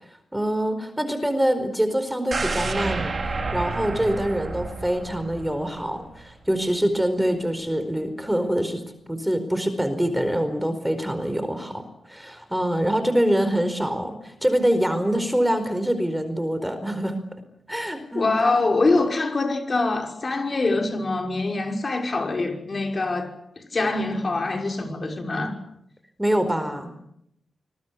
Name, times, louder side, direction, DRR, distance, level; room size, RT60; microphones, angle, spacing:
voice 1, 0.1-8.8 9.1-17.2 17.7-18.6 26.2-27.0, equal, 5° right, 4.6 m, -25 dB
sound 1, 2.3-6.3 6.6-6.7, right 3 dB, 45° right, 4.2 m, -30 dB
voice 2, 18.1-25.5, left 3 dB, 45° left, 5.7 m, -24 dB
26.0 x 21.5 x 8.4 m
cardioid pair, 70°, 0 cm